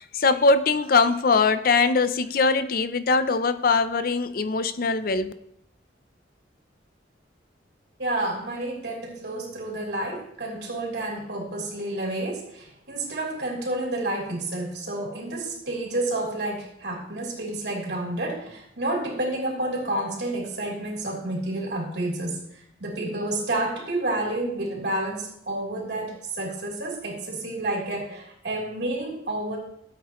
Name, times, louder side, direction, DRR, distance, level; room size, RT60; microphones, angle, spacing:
voice 1, 0.0-5.3, left 4 dB, 55° left, 0.6 m, -22 dB
voice 2, 8.0-29.6, right 1 dB, 70° right, 3.2 m, -30 dB
14.0 x 8.2 x 3.1 m
head